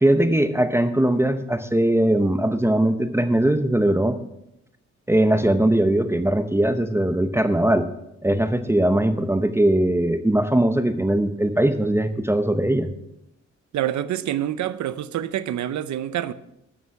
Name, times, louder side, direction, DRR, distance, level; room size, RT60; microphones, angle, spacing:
voice 1, 0.0-4.2 5.1-7.9 8.2-12.9, right 1 dB, 10° right, 0.8 m, -20 dB
voice 2, 13.7-16.3, right 11 dB, 80° right, 0.7 m, -26 dB
13.0 x 6.9 x 5.9 m
cardioid pair, 100°, 29 cm